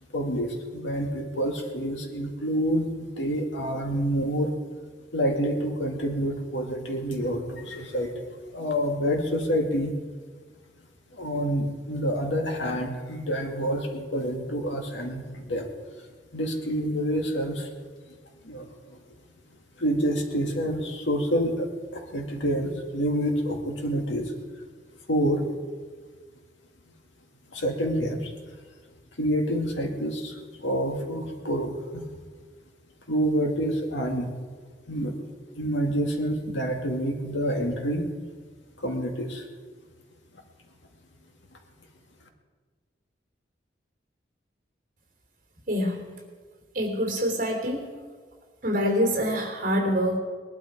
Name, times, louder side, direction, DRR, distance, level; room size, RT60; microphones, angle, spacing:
voice 1, 0.1-4.5 5.1-8.3 8.5-9.9 11.1-15.7 16.3-17.7 18.4-18.7 19.8-24.3 25.1-25.4 27.5-28.3 29.2-32.1 33.1-34.3 34.9-35.1 35.5-38.1 38.8-39.4, equal, 90° left, 2 dB, 2.1 m, -27 dB
voice 2, 45.7-46.1 46.7-47.8 48.6-50.2, equal, 45° right, 1 dB, 3.1 m, -25 dB
20.0 x 11.5 x 4.7 m, 1.5 s
head